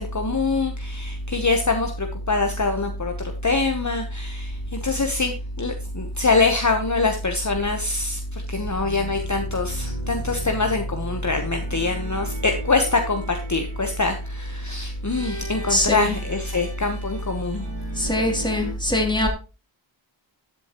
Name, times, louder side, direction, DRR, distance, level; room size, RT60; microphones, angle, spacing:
voice 1, 0.0-17.7, left 3 dB, 40° left, 4 dB, 1.1 m, -25 dB
sound 1, 8.7-18.7, right 1 dB, 70° right, 5.7 m, -40 dB
voice 2, 15.7-16.2 18.0-19.3, left 1 dB, 10° left, 1 dB, 3.0 m, -22 dB
12.5 x 7.7 x 3.0 m, 0.32 s
wide cardioid pair, 40°, 46 cm